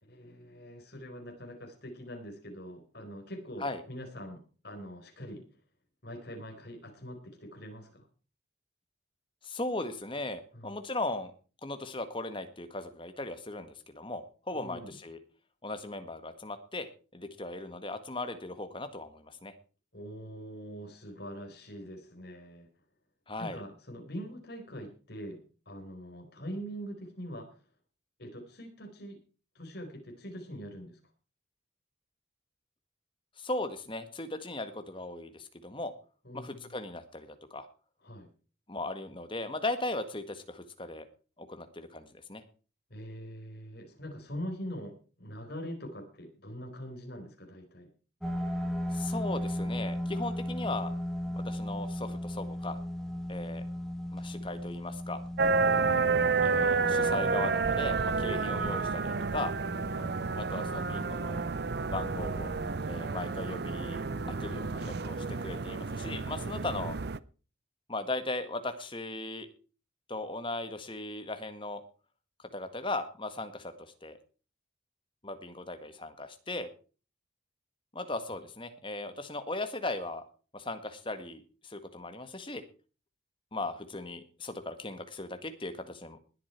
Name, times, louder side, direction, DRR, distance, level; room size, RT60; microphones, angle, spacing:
voice 1, 0.0-5.4 6.0-8.1 10.5-10.8 14.5-15.0 19.9-22.7 23.4-25.4 25.7-27.5 28.2-29.2 29.5-31.0 36.2-36.7 38.0-38.3 42.9-47.9 59.9-60.2, equal, 50° left, 4 dB, 4.3 m, -43 dB
voice 2, 9.4-11.3 11.6-15.2 15.6-16.9 17.1-19.5 23.3-23.6 33.4-35.9 36.3-37.7 38.7-41.1 41.4-42.4 48.9-50.9 51.4-52.8 53.3-53.6 54.1-55.2 56.4-59.5 60.3-61.4 61.9-62.5 62.9-64.0 64.4-67.0 67.9-69.5 70.1-71.8 72.5-74.2 75.2-76.7 77.9-80.2 80.5-82.6 83.5-86.2, left 2 dB, 25° left, 9 dB, 1.7 m, -37 dB
sound 1, 48.2-65.4, left 1 dB, ahead, 1.7 m, -38 dB
sound 2, 55.4-67.2, right 4 dB, 55° right, 0.6 m, -30 dB
20.5 x 8.7 x 4.5 m, 0.37 s
head